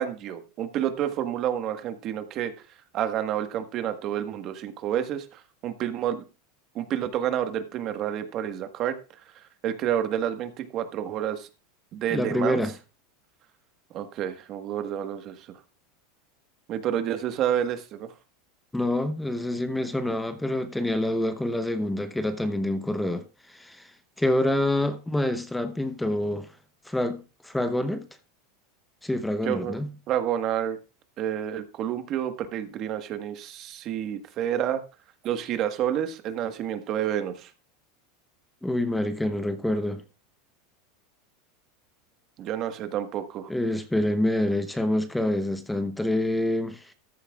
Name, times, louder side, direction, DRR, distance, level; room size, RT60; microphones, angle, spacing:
voice 1, 0.0-2.5 2.9-6.2 6.7-9.0 9.6-11.5 11.9-12.6 13.9-15.5 16.7-18.1 29.4-29.8 30.1-30.8 31.2-34.8 35.2-37.5 42.4-43.5, right 10 dB, 45° right, 1.4 m, -29 dB
voice 2, 12.1-12.7 18.7-23.9 24.2-26.5 26.9-28.1 29.0-29.9 38.6-40.0 43.5-46.9, left 1 dB, 5° left, 0.9 m, -27 dB
14.0 x 10.0 x 2.4 m
supercardioid pair, 120°, 0 cm